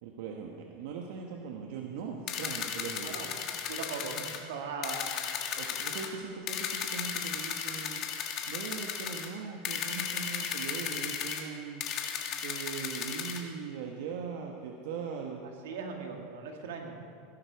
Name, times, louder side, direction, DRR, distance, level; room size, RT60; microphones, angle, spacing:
voice 1, 0.0-3.2 5.6-8.0 8.5-11.8 12.4-15.4, right 6 dB, 70° right, 1 dB, 1.3 m, -40 dB
sound 1, 2.3-4.4 4.8-6.1 6.5-9.3 9.6-11.4 11.8-13.4, left 8 dB, 40° left, 1.5 m, -35 dB
voice 2, 3.7-5.0 15.6-17.2, right 5 dB, 85° right, 2 dB, 2.2 m, -39 dB
16.5 x 11.5 x 4.7 m, 2.4 s
supercardioid pair, 145°, 0 cm